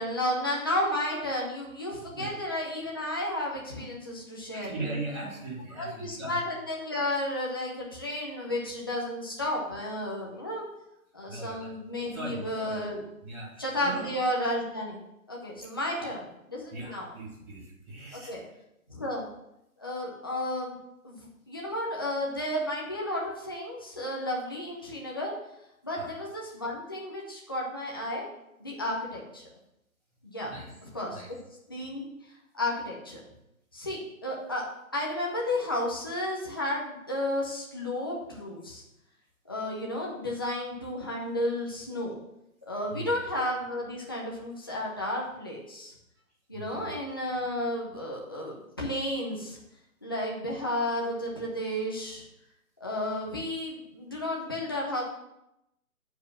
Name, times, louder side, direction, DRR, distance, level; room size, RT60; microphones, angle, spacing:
voice 1, 0.0-5.0 5.8-10.7 11.1-13.0 13.6-15.0 15.3-16.2 16.5-17.1 18.3-18.4 18.9-19.2 19.8-20.8 21.0-25.3 25.8-28.2 28.6-29.5 30.2-30.5 30.9-31.2 31.7-32.1 32.5-33.2 33.7-34.6 34.9-38.8 39.5-42.2 42.7-45.9 46.5-49.6 50.0-52.2 52.8-55.0, left 1 dB, 15° left, -4 dB, 0.7 m, -32 dB
voice 2, 4.5-6.4 11.3-11.7 12.1-12.8 13.2-14.1 16.0-16.1 16.7-18.3 25.9-26.2 30.4-30.7 31.1-31.3 42.9-43.1 46.5-46.9, right 2 dB, 5° right, -10 dB, 1.2 m, -39 dB
8.1 x 4.7 x 7.4 m, 0.84 s
hypercardioid pair, 170°, 43 cm